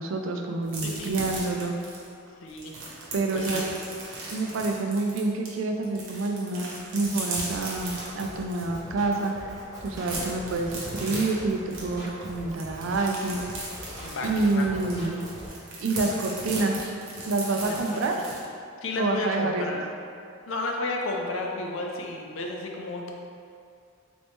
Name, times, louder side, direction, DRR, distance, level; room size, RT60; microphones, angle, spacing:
voice 1, 0.0-1.7 3.1-3.6 4.3-9.6 9.8-13.4 14.2-15.2 15.8-16.8 17.3-18.1 19.0-19.7, right 3 dB, 65° right, 3 dB, 0.4 m, -27 dB
sound 1, 0.7-5.5 5.8-8.7 9.1-9.2 9.5-18.4, right 2 dB, 80° right, 1.0 m, -37 dB
voice 2, 0.8-1.3 2.4-2.8 3.3-3.6 14.0-14.9 15.2-15.3 17.6-17.8 18.1-18.2 18.8-19.8 20.5-23.1, left 2 dB, 65° left, 0 dB, 0.5 m, -32 dB
Drum kit, 7.5-15.5, equal, 15° right, 0.9 m, -42 dB
4.0 x 3.0 x 3.5 m, 2.4 s
head